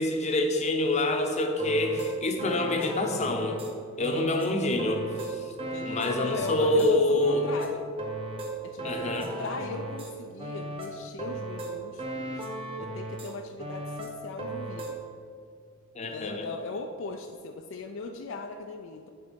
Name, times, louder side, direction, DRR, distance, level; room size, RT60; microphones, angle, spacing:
voice 1, 0.0-3.6 4.0-5.4 5.9-7.4 8.8-9.3 16.0-16.5, left 1 dB, 35° left, 4 dB, 0.7 m, -26 dB
sound 1, 1.6-3.7 4.0-6.9 7.2-10.1 10.4-13.3 13.6-14.9, right 2 dB, 25° right, 0.9 m, -36 dB
voice 2, 4.0-4.5 5.6-7.8 8.6-9.1 9.4-12.4 12.8-15.0 16.1-19.1, left 3 dB, 60° left, 4 dB, 0.4 m, -39 dB
9.2 x 3.9 x 5.2 m, 2.2 s
head